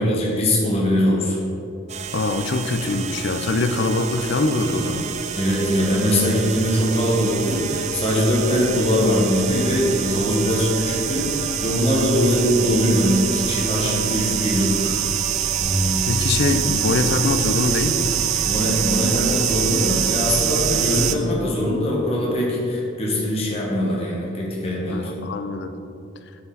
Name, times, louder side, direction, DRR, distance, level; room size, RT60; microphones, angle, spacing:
voice 1, 0.0-1.4 5.3-14.9 18.4-25.1, equal, 30° left, -4 dB, 1.2 m, -21 dB
sound 1, 1.9-21.1, right 9 dB, 35° right, 0.3 m, -25 dB
voice 2, 2.1-5.1 16.1-18.2 24.9-25.7, left 3 dB, 60° left, 9 dB, 0.5 m, -23 dB
Bass guitar, 15.6-21.9, left 1 dB, ahead, 0.8 m, -33 dB
8.2 x 5.1 x 3.9 m, 2.6 s
head